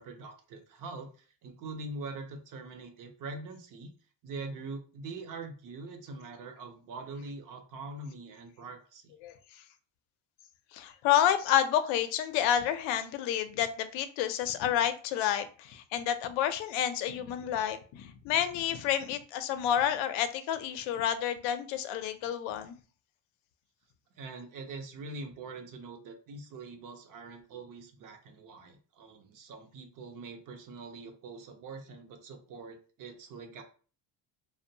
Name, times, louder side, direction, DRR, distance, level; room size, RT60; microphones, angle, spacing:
voice 1, 0.0-3.9 4.2-9.1 24.2-33.6, right 3 dB, 45° right, 5 dB, 0.6 m, -43 dB
voice 2, 10.7-22.7, left 10 dB, 90° left, 10 dB, 0.5 m, -29 dB
2.6 x 2.1 x 2.7 m, 0.38 s
cardioid pair, 145°, 44 cm